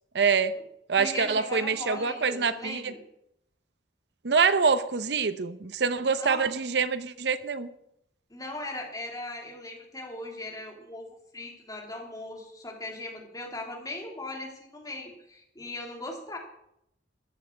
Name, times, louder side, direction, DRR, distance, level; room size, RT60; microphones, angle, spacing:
voice 1, 0.1-0.5 0.9-2.9 4.2-7.7, right 5 dB, 65° right, 13 dB, 0.7 m, -25 dB
voice 2, 1.0-3.0 6.0-6.5 8.3-11.1 11.3-16.4, left 2 dB, 20° left, 1 dB, 2.9 m, -39 dB
14.0 x 6.8 x 8.4 m, 0.77 s
head